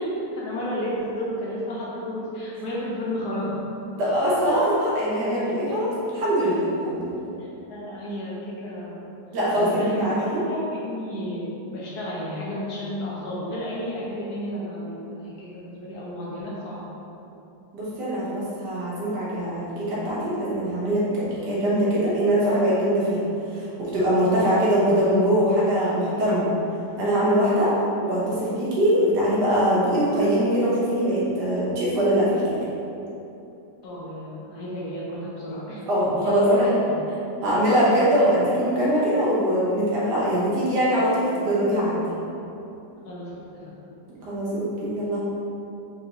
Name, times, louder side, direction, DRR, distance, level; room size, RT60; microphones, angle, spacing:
voice 1, 0.3-3.5 7.4-9.0 9.5-16.8 33.8-35.8 36.1-37.0 43.0-43.8, equal, 70° left, -6 dB, 1.5 m, -32 dB
voice 2, 4.0-7.3 9.3-10.4 17.7-26.5 27.0-27.7 28.0-32.6 35.9-36.7 37.4-42.0 44.2-45.2, equal, 85° right, -8 dB, 1.8 m, -22 dB
4.1 x 4.1 x 2.9 m, 2.9 s
omnidirectional pair, 1.8 m